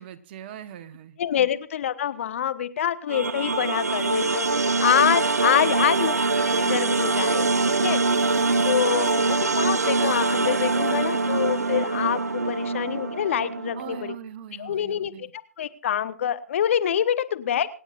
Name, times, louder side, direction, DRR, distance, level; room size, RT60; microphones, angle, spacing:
voice 1, 0.0-1.5 13.8-15.3, right 9 dB, 40° right, 12 dB, 1.1 m, -41 dB
voice 2, 1.2-8.0 8.6-14.1 14.6-15.1 15.6-17.7, left 10 dB, 55° left, 13 dB, 1.0 m, -26 dB
sound 1, 3.1-14.1, right 3 dB, 90° right, 0.6 m, -24 dB
26.0 x 9.1 x 2.5 m, 0.38 s
hypercardioid pair, 135°, 8 cm